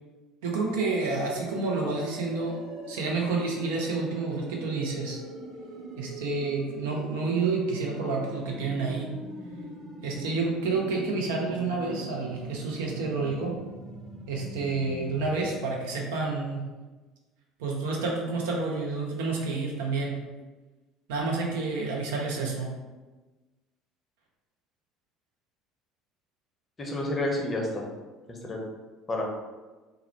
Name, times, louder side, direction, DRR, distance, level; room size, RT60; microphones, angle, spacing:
voice 1, 0.4-2.6 2.9-5.2 6.0-9.1 10.0-13.5 14.3-16.7 17.6-20.2 21.1-22.7, right 3 dB, 65° right, -1 dB, 0.4 m, -29 dB
sound 1, 0.6-15.5, equal, 30° right, 0.8 m, -42 dB
voice 2, 26.8-27.9 28.3-28.6 29.1-29.2, left 1 dB, 25° left, -1 dB, 0.6 m, -30 dB
2.3 x 2.0 x 2.9 m, 1.2 s
figure-of-eight pair, 60°, 0 cm